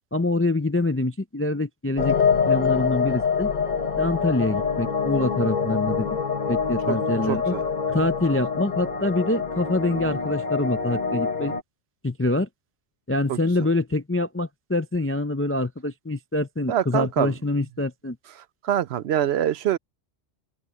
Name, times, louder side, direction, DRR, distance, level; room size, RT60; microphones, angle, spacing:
voice 1, 0.1-2.2 2.5-3.5 4.0-6.2 6.5-7.5 7.9-11.5 12.0-12.5 13.1-18.2, left 2 dB, 20° left, 0.3 m, -25 dB
sound 1, 2.0-11.6, left 6 dB, 40° left, 1.3 m, -25 dB
voice 2, 7.3-7.6 13.3-13.4 16.7-17.3 18.6-19.8, right 10 dB, 65° right, 0.8 m, -24 dB
open air
omnidirectional pair, 1.3 m